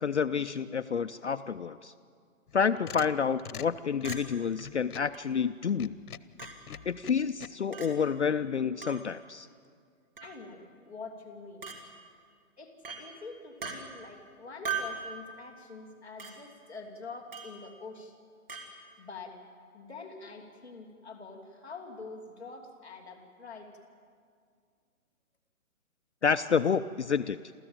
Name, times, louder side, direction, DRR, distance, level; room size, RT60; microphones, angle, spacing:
voice 1, 0.0-1.9 2.5-5.9 6.9-9.5 26.2-27.4, left 6 dB, 50° left, 10 dB, 0.5 m, -29 dB
sound 1, 2.5-5.2 5.7-7.5, left 8 dB, 90° left, 1.0 m, -43 dB
Chink clink, 4.0-4.2 5.1-5.2 6.4-6.5 7.7-7.9 8.8-9.0 10.2-10.4 11.6-11.8 12.8-13.0 13.6-13.8 14.6-15.0 16.2-16.3 17.3-17.5 18.5-18.7, right 5 dB, 40° right, 2.8 m, -37 dB
voice 2, 10.2-11.7 12.6-18.1 19.0-19.4 19.7-23.7, left 4 dB, 5° right, -7 dB, 1.1 m, -45 dB
28.0 x 14.0 x 8.9 m, 2.2 s
hypercardioid pair, 180°, 43 cm